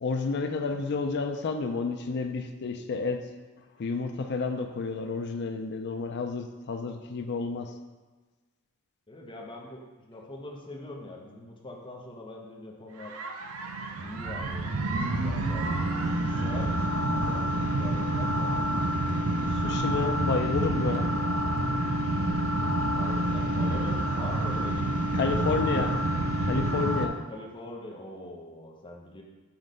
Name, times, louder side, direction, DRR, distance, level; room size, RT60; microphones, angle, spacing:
voice 1, 0.0-3.2 3.8-7.7 19.5-21.1 25.1-25.9 26.4-27.2, left 4 dB, 55° left, 6 dB, 0.4 m, -30 dB
voice 2, 9.1-13.1 14.0-18.5 22.9-24.9 25.3-25.9 27.3-29.2, left 1 dB, 25° left, 0 dB, 0.8 m, -43 dB
sound 1, 13.0-27.1, right 1 dB, 80° right, 0.5 m, -28 dB
5.8 x 3.2 x 5.1 m, 1.3 s
head